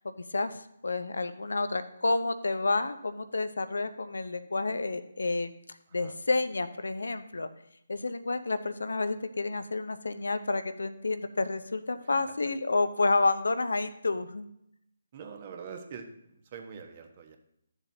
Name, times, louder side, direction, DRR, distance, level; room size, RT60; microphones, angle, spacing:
voice 1, 0.3-5.5 5.9-7.5 7.9-14.4, left 3 dB, 70° left, 10 dB, 0.6 m, -30 dB
voice 2, 15.1-17.4, right 6 dB, 40° right, 4 dB, 1.1 m, -44 dB
13.0 x 7.0 x 2.8 m, 0.77 s
figure-of-eight pair, 145°, 0 cm